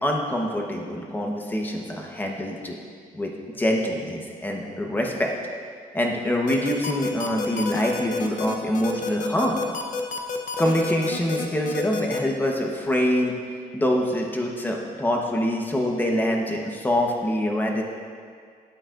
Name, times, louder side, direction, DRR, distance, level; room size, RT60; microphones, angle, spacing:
voice 1, 0.0-2.8 3.1-3.3 3.6-5.3 5.9-9.6 10.6-13.3 13.7-17.8, equal, 10° left, 0 dB, 1.0 m, -25 dB
sound 1, 6.5-12.2, left 4 dB, 55° left, 0.8 m, -29 dB
12.5 x 8.6 x 2.5 m, 2.1 s
cardioid pair, 145°, 16 cm